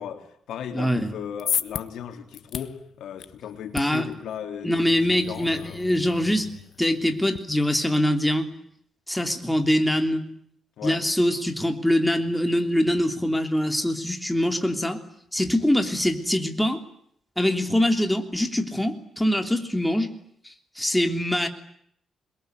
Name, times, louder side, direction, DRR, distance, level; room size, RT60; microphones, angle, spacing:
voice 1, 0.0-5.8 10.8-11.0, left 8 dB, 90° left, 6 dB, 3.6 m, -37 dB
voice 2, 0.7-1.1 3.7-4.0 4.6-6.5 6.8-8.5 9.1-10.2 10.8-15.0 15.3-16.8 17.4-20.1 20.4-21.5, left 1 dB, 5° left, 5 dB, 3.2 m, -23 dB
sound 1, 1.1-7.4, left 9 dB, 70° left, 1.3 m, -36 dB
28.5 x 22.5 x 9.4 m, 0.69 s
cardioid pair, 110°, 0 cm